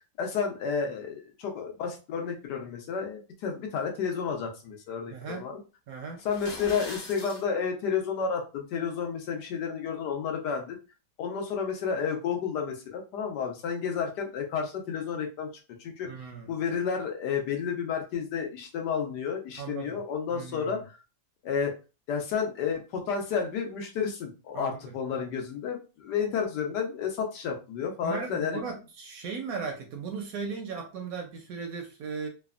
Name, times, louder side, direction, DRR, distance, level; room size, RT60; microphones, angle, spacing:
voice 1, 0.2-5.6 6.2-10.8 11.2-15.5 15.8-16.1 16.5-20.8 21.4-21.7 22.1-28.6, left 6 dB, 80° left, 1.3 m, -31 dB
voice 2, 5.1-5.5 5.9-6.2 16.1-16.5 19.6-20.0 20.3-20.8 24.5-24.9 28.0-32.3, right 5 dB, 70° right, 0.9 m, -37 dB
sound 1, 6.2-7.4, left 2 dB, 50° left, 0.9 m, -41 dB
3.3 x 2.1 x 2.3 m
omnidirectional pair, 1.8 m